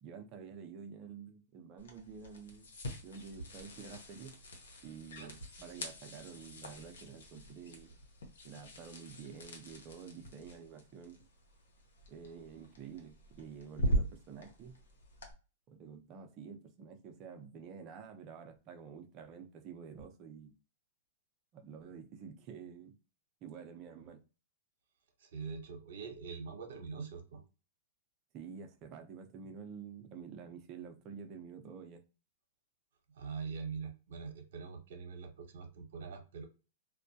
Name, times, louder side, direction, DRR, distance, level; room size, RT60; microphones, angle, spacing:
voice 1, 0.0-2.7 3.0-4.4 4.8-8.0 8.4-11.2 12.1-14.8 15.7-20.5 21.5-23.0 23.4-24.2 28.3-32.0, right 6 dB, 35° right, 0.5 m, -49 dB
sound 1, 1.8-15.3, right 1 dB, 85° left, 0.8 m, -42 dB
voice 2, 25.2-27.4 33.2-36.5, right 5 dB, 70° right, 0.8 m, -43 dB
2.2 x 2.1 x 2.7 m
hypercardioid pair, 135°, 0 cm